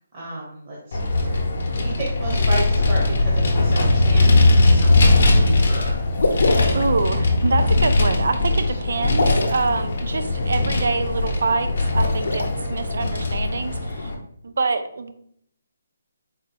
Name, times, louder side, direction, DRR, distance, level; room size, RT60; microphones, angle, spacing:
voice 1, 0.1-1.4 1.7-6.0, right 2 dB, 25° right, -4 dB, 0.9 m, -33 dB
Vehicle, 0.9-14.1, left 2 dB, 40° left, 0.8 m, -20 dB
Wind, 2.2-13.8, left 3 dB, 20° left, 0.3 m, -32 dB
sound 1, 6.2-6.9 9.1-9.7 11.8-12.4, left 2 dB, 85° left, 0.7 m, -23 dB
voice 2, 6.7-14.1 14.4-15.1, right 3 dB, 55° right, 9 dB, 0.4 m, -25 dB
4.1 x 2.3 x 4.1 m, 0.67 s
hypercardioid pair, 180°, 0 cm